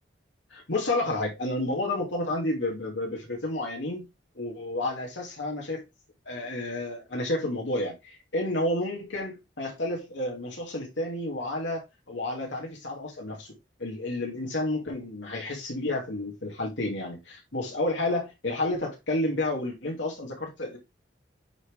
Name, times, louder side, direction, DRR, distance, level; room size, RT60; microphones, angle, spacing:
voice 1, 0.5-4.1 4.3-5.8 6.3-13.5 13.8-20.8, left 2 dB, 75° left, 2.5 m, -30 dB
9.0 x 4.5 x 3.4 m
head